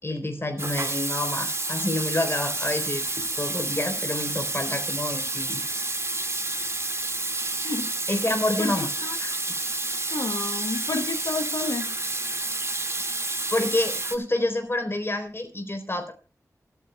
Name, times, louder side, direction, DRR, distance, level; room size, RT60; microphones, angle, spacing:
voice 1, 0.0-5.6 8.1-8.9 9.2-9.3 13.1-16.1, left 1 dB, 35° left, 5 dB, 3.9 m, -28 dB
Water tap faucet / Sink (filling or washing), 0.6-14.2, right 2 dB, 40° right, 2.1 m, -29 dB
voice 2, 8.6-9.2 10.1-11.9, left 3 dB, 80° left, 5 dB, 1.1 m, -30 dB
27.5 x 9.5 x 2.3 m, 0.31 s
cardioid pair, 45°, 7 cm